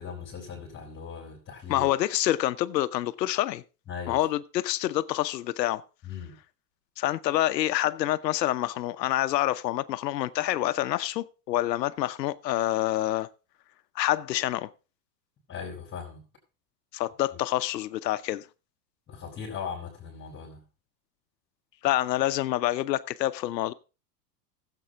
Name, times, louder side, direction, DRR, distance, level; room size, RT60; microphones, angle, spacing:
voice 1, 0.0-1.9 3.9-4.2 6.0-6.4 15.5-16.2 19.1-20.6, left 6 dB, 25° left, 3.9 m, -39 dB
voice 2, 1.7-3.6 4.1-5.8 7.0-13.3 14.0-14.7 16.9-18.4 21.8-23.7, left 14 dB, 75° left, 0.8 m, -27 dB
15.5 x 7.9 x 3.7 m
hypercardioid pair, 115°, 49 cm